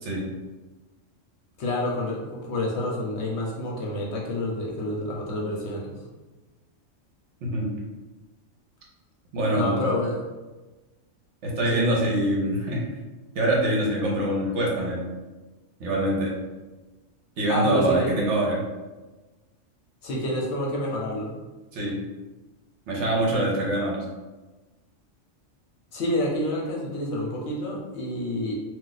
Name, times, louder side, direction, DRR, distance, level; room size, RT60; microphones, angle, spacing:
voice 1, 1.6-6.0 9.5-10.2 11.7-12.0 17.5-18.1 20.0-21.3 25.9-28.5, left 1 dB, 65° left, -2 dB, 0.8 m, -28 dB
voice 2, 9.3-9.9 11.4-12.8 13.3-15.0 15.8-16.3 17.4-18.6 21.7-22.0 22.9-24.0, right 1 dB, 65° right, -3 dB, 1.0 m, -24 dB
2.4 x 2.3 x 3.9 m, 1.2 s
omnidirectional pair, 1.3 m